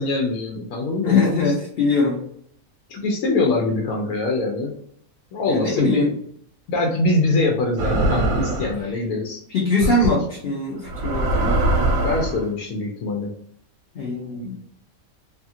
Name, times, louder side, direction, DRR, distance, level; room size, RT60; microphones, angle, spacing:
voice 1, 0.0-1.4 2.9-4.7 5.3-6.2 6.7-9.4 9.8-10.2 12.0-13.3, left 2 dB, 75° left, 0 dB, 1.0 m, -23 dB
voice 2, 1.0-2.2 5.5-6.1 9.5-11.6 13.9-14.5, left 3 dB, 55° left, -3 dB, 0.7 m, -22 dB
sound 1, 7.8-8.8 9.8-10.1 10.8-12.4, right 2 dB, 70° right, 1.1 m, -22 dB
2.7 x 2.4 x 2.7 m, 0.66 s
omnidirectional pair, 1.5 m